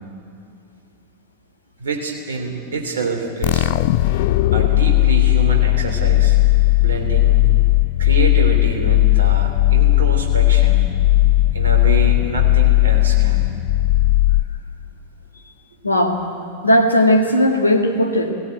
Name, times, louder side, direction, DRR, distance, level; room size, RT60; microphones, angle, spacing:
voice 1, 1.8-3.7 4.5-6.4 6.8-7.4 8.0-10.9 11.5-13.5, right 3 dB, 65° right, 2 dB, 3.3 m, -26 dB
sound 1, 3.4-14.9, left 16 dB, 50° left, 0.4 m, -16 dB
voice 2, 15.8-16.2 16.6-18.3, left 1 dB, 80° left, 3 dB, 1.9 m, -16 dB
18.0 x 16.5 x 9.0 m, 2.6 s
figure-of-eight pair, 90°, 0 cm